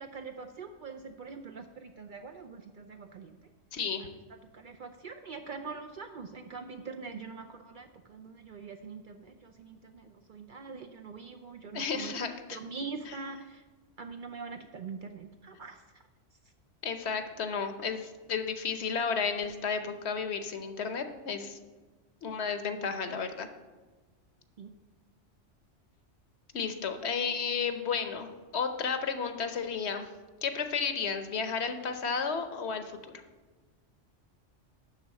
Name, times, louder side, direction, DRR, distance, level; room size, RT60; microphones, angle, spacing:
voice 1, 0.0-3.4 4.0-4.1 4.5-12.1 12.5-13.6 14.0-16.0 24.6-24.7, right 4 dB, 55° right, 6 dB, 0.6 m, -43 dB
voice 2, 3.7-4.1 11.7-12.6 13.1-13.2 16.8-21.6 22.2-23.5 26.5-30.1 30.4-33.1, left 5 dB, 65° left, 8 dB, 1.1 m, -33 dB
11.5 x 3.9 x 7.5 m, 1.3 s
omnidirectional pair, 1.2 m